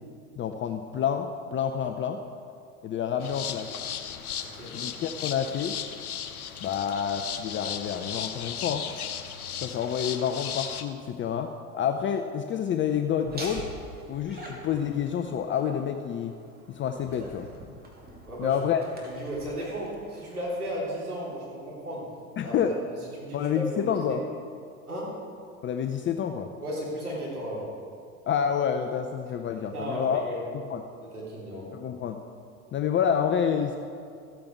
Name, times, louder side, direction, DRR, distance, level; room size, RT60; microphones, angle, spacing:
voice 1, 0.4-2.2 2.8-3.7 4.7-5.8 6.6-8.9 9.6-13.7 14.1-16.4 16.7-17.5 18.4-18.8 22.4-22.8 23.3-24.2 25.6-26.5 28.3-30.2 30.7-30.8 31.7-32.2 32.7-33.8, left 8 dB, 30° left, 6 dB, 0.6 m, -28 dB
sound 1, 3.2-10.8, left 8 dB, 80° left, 0.9 m, -36 dB
voice 2, 4.4-4.8 18.2-18.6 19.0-22.0 22.4-22.5 22.9-24.2 24.9-25.2 26.6-27.7 29.7-30.4 31.0-31.7, equal, 90° right, -5 dB, 3.4 m, -35 dB
Laughter, 13.2-20.9, right 1 dB, 20° right, 2.7 m, -45 dB
14.5 x 8.7 x 4.6 m, 2.4 s
figure-of-eight pair, 75°, 43 cm